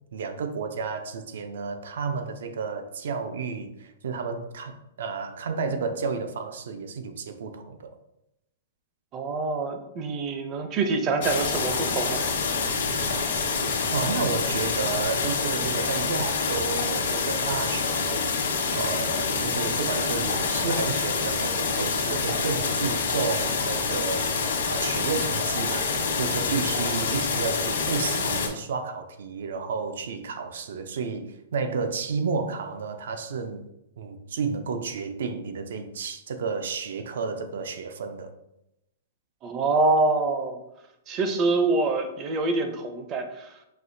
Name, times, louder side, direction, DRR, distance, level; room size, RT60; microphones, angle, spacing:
voice 1, 0.1-8.0 13.9-18.2 18.7-24.3 24.7-33.7 34.0-38.3, right 5 dB, 70° right, 7 dB, 0.5 m, -31 dB
voice 2, 9.1-12.3 39.4-40.6 41.1-43.6, right 3 dB, 25° right, 6 dB, 0.5 m, -25 dB
sound 1, 11.2-28.5, left 4 dB, 85° left, 1.0 m, -27 dB
6.0 x 2.7 x 2.7 m, 0.86 s
hypercardioid pair, 165°, 0 cm